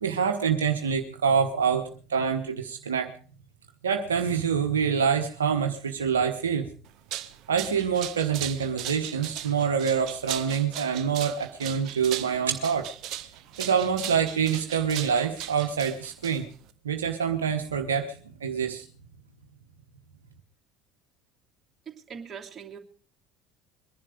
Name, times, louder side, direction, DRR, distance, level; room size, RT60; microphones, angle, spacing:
voice 1, 0.0-3.1 3.8-6.7 7.5-12.9 13.6-16.5 16.8-18.8, right 7 dB, 75° right, 5 dB, 1.1 m, -26 dB
sound 1, 6.9-16.7, right 12 dB, 50° right, 0.9 m, -38 dB
voice 2, 21.9-22.8, right 6 dB, 30° right, 1 dB, 2.9 m, -41 dB
22.0 x 11.0 x 5.0 m, 0.41 s
figure-of-eight pair, 65°, 0 cm